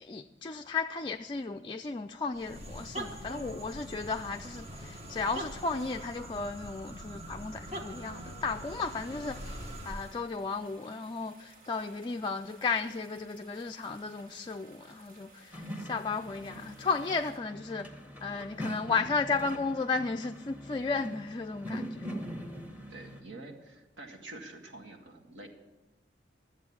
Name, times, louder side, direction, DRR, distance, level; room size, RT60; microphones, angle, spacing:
voice 1, 0.0-17.9 18.2-22.0, left 4 dB, 25° left, 0.3 m, -34 dB
sound 1, 2.3-10.2, right 1 dB, 35° right, 1.2 m, -43 dB
sound 2, 9.3-17.4, right 2 dB, 50° right, 1.8 m, -58 dB
sound 3, 15.5-23.2, equal, 10° right, 1.4 m, -42 dB
voice 2, 22.9-25.5, right 2 dB, 75° right, 1.8 m, -47 dB
12.5 x 7.8 x 8.6 m
head